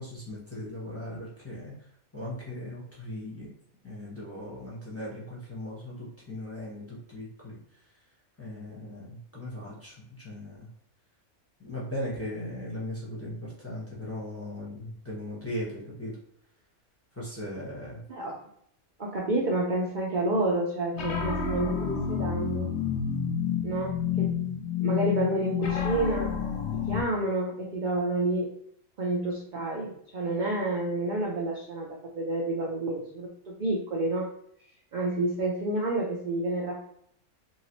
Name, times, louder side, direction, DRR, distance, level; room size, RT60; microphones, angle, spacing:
voice 1, 0.0-1.7 2.1-3.5 3.8-7.9 8.4-10.7 11.6-16.2 17.1-18.0, left 1 dB, 15° left, -6 dB, 0.7 m, -38 dB
voice 2, 19.0-22.7 23.6-24.4 24.8-26.3 26.7-28.5 29.0-34.3 34.9-36.9, right 2 dB, 65° right, -2 dB, 0.4 m, -29 dB
sound 1, 20.9-27.0, left 7 dB, 65° left, 0.7 m, -29 dB
2.9 x 2.8 x 2.9 m, 0.68 s
omnidirectional pair, 1.5 m